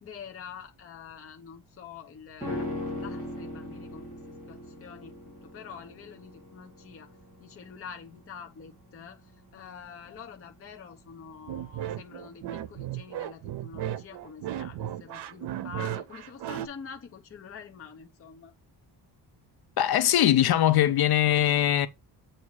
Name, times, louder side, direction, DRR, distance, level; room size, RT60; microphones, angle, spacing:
voice 1, 0.0-7.1 7.4-18.5, left 6 dB, 30° left, 0.8 m, -46 dB
sound 1, 2.4-11.8 12.1-12.2, left 1 dB, 20° right, 2.6 m, -40 dB
sound 2, 11.5-16.7, right 11 dB, 65° right, 0.7 m, -35 dB
voice 2, 19.8-21.9, left 12 dB, 60° left, 0.6 m, -21 dB
8.3 x 2.8 x 4.7 m
cardioid pair, 165°, 43 cm